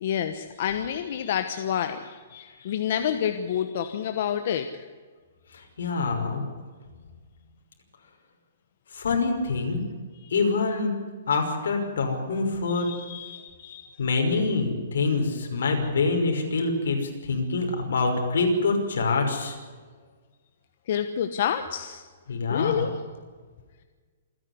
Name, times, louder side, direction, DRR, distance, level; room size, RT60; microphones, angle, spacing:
voice 1, 0.0-4.8 12.7-14.0 20.9-22.0 22.5-22.9, left 9 dB, 45° left, 8 dB, 1.1 m, -29 dB
voice 2, 5.5-6.4 8.9-9.8 10.3-10.9 11.3-12.9 14.0-19.6 22.3-22.9, left 3 dB, 80° left, 3 dB, 5.6 m, -25 dB
27.0 x 10.5 x 9.8 m, 1.5 s
hypercardioid pair, 170°, 0 cm